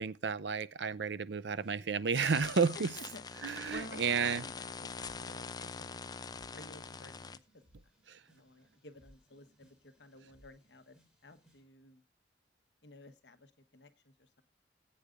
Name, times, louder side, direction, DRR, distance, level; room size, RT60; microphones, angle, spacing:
voice 1, 0.0-2.9 3.4-4.4 8.1-8.2, right 5 dB, 70° right, 0.6 m, -32 dB
sound 1, 1.4-11.7, equal, 5° right, 3.4 m, -67 dB
sound 2, 2.1-7.4, left 5 dB, 20° left, 0.5 m, -44 dB
voice 2, 3.7-4.7 5.0-6.0 6.5-7.4 8.3-11.0 11.2-12.0 12.8-14.4, left 2 dB, 65° left, 1.2 m, -53 dB
20.0 x 8.7 x 2.5 m
head